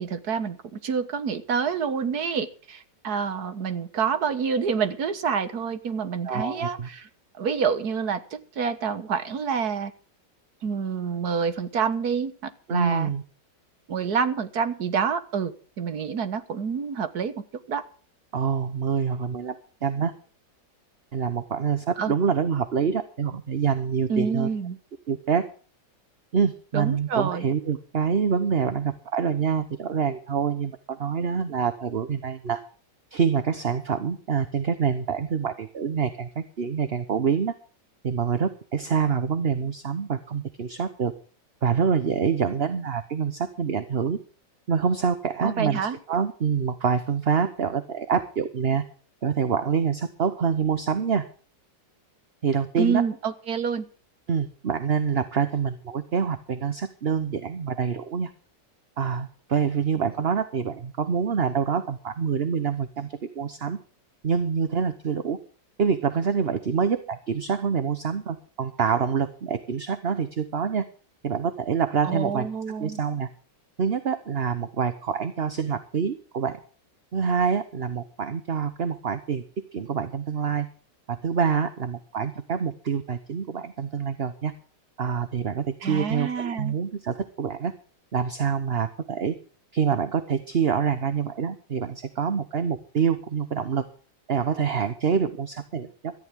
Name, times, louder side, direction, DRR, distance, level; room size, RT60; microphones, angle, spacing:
voice 1, 0.0-7.1 7.4-9.9 10.6-13.1 13.9-17.3 17.7-17.8 22.0-22.1 24.1-24.8 26.7-27.5 45.4-46.0 52.8-53.8 72.0-73.0 85.8-86.7, right 6 dB, 60° right, 11 dB, 1.8 m, -27 dB
voice 2, 6.2-6.9 12.7-13.2 18.3-20.1 21.1-24.5 25.1-25.5 26.3-32.6 33.1-37.6 38.0-41.1 41.6-44.2 44.7-48.8 49.2-51.3 52.4-53.0 54.3-58.3 59.0-63.8 64.2-65.4 65.8-70.9 71.2-72.5 72.8-73.3 73.8-76.6 77.1-79.4 79.7-80.7 81.1-84.5 85.0-87.7 88.1-89.4 89.7-93.9 94.3-96.1, right 6 dB, 40° right, 11 dB, 1.1 m, -26 dB
17.0 x 14.0 x 3.7 m, 0.40 s
omnidirectional pair, 1.9 m